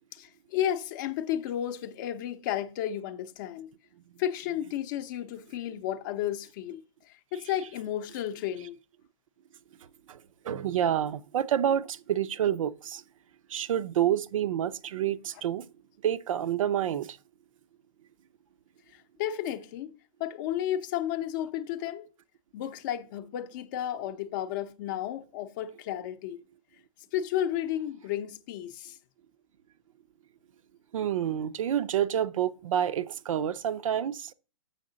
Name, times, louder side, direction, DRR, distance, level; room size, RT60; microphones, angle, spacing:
voice 1, 0.1-3.7 4.2-6.8 7.1-8.8 18.9-22.1 22.5-26.4 27.1-29.0, left 11 dB, 35° left, 0.6 m, -33 dB
voice 2, 10.1-13.0 13.5-15.7 16.0-17.2 30.9-34.3, right 10 dB, 70° right, 0.5 m, -28 dB
6.5 x 6.4 x 3.8 m
hypercardioid pair, 150°, 17 cm